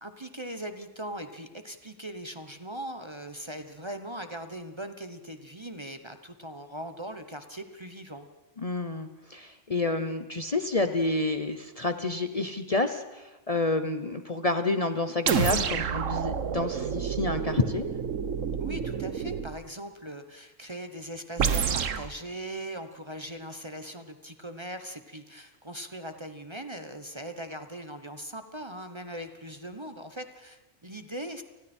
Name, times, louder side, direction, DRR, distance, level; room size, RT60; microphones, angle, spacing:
voice 1, 0.0-8.3 18.6-31.4, right 1 dB, 25° right, 8 dB, 1.0 m, -40 dB
voice 2, 8.6-17.8, left 2 dB, 35° left, 8 dB, 0.9 m, -29 dB
decelerate discharge, 15.3-19.6 21.4-22.1, right 7 dB, 90° right, 1.4 m, -29 dB
29.5 x 20.0 x 4.4 m, 1.1 s
omnidirectional pair, 1.3 m